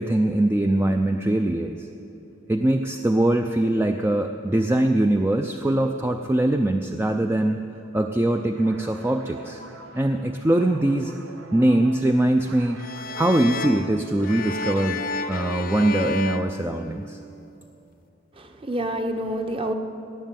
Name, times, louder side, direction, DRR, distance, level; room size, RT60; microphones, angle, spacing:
voice 1, 0.0-1.9 2.5-7.7 7.9-9.6 9.9-11.1 11.5-12.8 13.2-17.2, right 1 dB, 10° right, 6 dB, 0.4 m, -22 dB
sound 1, 8.5-15.9, right 3 dB, 80° right, 1.2 m, -46 dB
sound 2, 12.8-17.4, left 3 dB, 45° left, 0.6 m, -31 dB
voice 2, 18.3-19.7, right 1 dB, 25° right, 6 dB, 0.9 m, -28 dB
18.0 x 6.8 x 9.1 m, 2.9 s
head